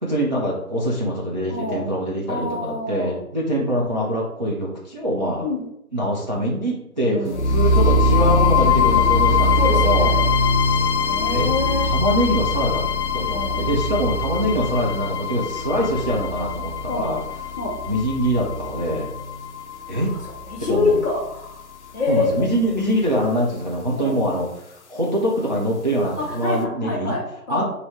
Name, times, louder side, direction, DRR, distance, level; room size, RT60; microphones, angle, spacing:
voice 1, 0.0-5.5 5.9-10.1 11.3-11.5 11.8-12.8 13.1-17.2 17.9-19.1 19.9-20.1 20.7-21.0 22.1-27.2 27.5-27.6, equal, 30° right, -4 dB, 0.4 m, -24 dB
voice 2, 1.5-1.9 2.3-3.1 5.4-5.6 7.0-7.6 9.6-10.3 11.1-11.9 13.2-13.6 16.9-17.0 17.6-17.8 19.9-20.0 20.5-21.6 21.9-22.3 23.9-24.2 26.2-27.6, left 3 dB, 15° left, -9 dB, 0.8 m, -26 dB
sound 1, 7.3-21.3, left 3 dB, 50° left, 0.5 m, -22 dB
3.1 x 2.6 x 4.1 m, 0.80 s
figure-of-eight pair, 145°, 45 cm